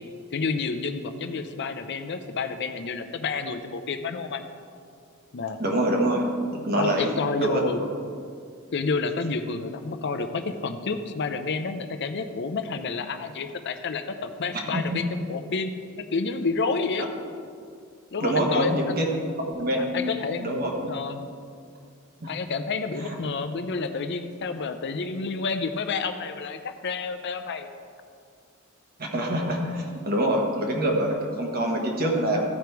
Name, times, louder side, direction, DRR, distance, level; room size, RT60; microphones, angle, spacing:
voice 1, 0.3-4.4 5.3-5.6 6.7-7.8 8.7-15.7 16.1-17.1 18.1-19.0 19.8-21.3 22.3-27.7, left 4 dB, 55° left, 8 dB, 0.6 m, -30 dB
voice 2, 5.6-6.2 6.5-7.6 14.7-15.0 18.2-20.1 20.4-20.9 22.2-22.3 23.0-23.2 29.0-32.4, right 1 dB, 45° right, 0 dB, 1.3 m, -25 dB
13.5 x 5.1 x 4.6 m, 2.2 s
head